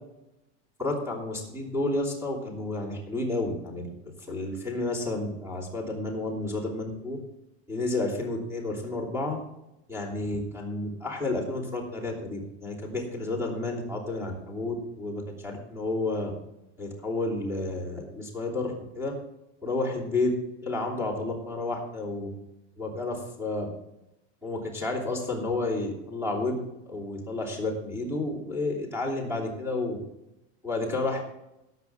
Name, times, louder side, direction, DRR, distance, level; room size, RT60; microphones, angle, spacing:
voice 1, 0.8-7.2 7.7-9.4 9.9-16.3 16.8-19.1 19.6-20.3 20.6-22.3 22.8-23.7 24.4-26.6 26.9-30.0 30.6-31.2, left 2 dB, 10° right, -3 dB, 3.1 m, -31 dB
17.5 x 8.1 x 3.5 m, 0.90 s
supercardioid pair, 180°, 33 cm